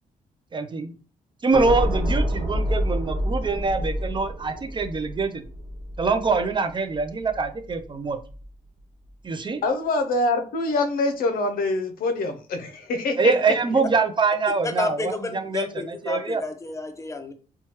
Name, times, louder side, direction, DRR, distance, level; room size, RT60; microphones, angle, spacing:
voice 1, 0.5-0.9 1.4-5.4 6.0-8.2 9.2-9.6 13.2-15.7 16.0-16.4, right 4 dB, 30° right, 0.4 m, -24 dB
sound 1, 1.5-7.8 8.2-8.5, equal, 70° right, 1.0 m, -28 dB
voice 2, 9.6-13.3 13.8-13.9, left 2 dB, 75° left, 0.5 m, -25 dB
voice 3, 14.6-17.3, left 2 dB, 20° left, 0.6 m, -30 dB
3.0 x 2.2 x 2.9 m
cardioid pair, 70°, 15 cm